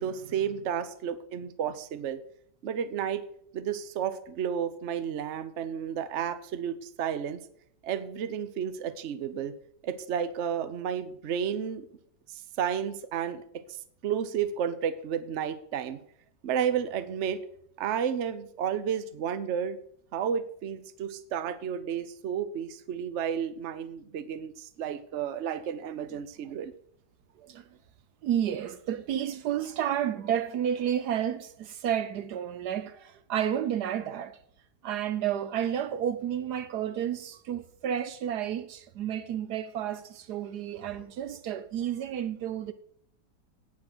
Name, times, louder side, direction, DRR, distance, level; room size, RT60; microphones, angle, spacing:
voice 1, 0.0-2.2 2.6-3.2 3.5-7.4 7.8-9.5 9.8-11.9 12.3-13.4 14.0-16.0 16.4-17.4 17.8-19.8 20.1-26.7, right 8 dB, 50° right, 1.0 m, -32 dB
voice 2, 27.4-27.7 28.2-34.4 34.8-42.7, right 10 dB, 70° right, 1.2 m, -31 dB
17.0 x 6.5 x 6.1 m
omnidirectional pair, 1.8 m